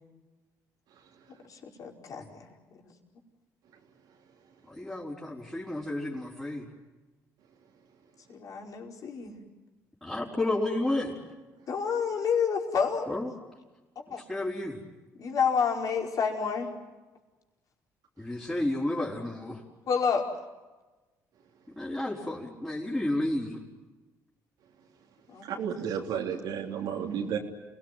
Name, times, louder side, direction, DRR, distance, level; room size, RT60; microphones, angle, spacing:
voice 1, 1.4-2.5 8.3-9.4 11.7-13.1 14.0-14.2 15.2-16.7 19.9-20.3 22.4-22.5 25.3-25.9, left 6 dB, 55° left, 1 dB, 5.1 m, -29 dB
voice 2, 4.7-6.7 10.0-11.2 13.1-13.3 14.3-14.8 18.2-19.6 21.8-23.6, left 1 dB, 10° left, -6 dB, 5.1 m, -31 dB
voice 3, 25.5-27.4, right 8 dB, 80° right, 0 dB, 3.4 m, -32 dB
28.5 x 19.0 x 9.4 m, 1.2 s
cardioid pair, 90°, 7 cm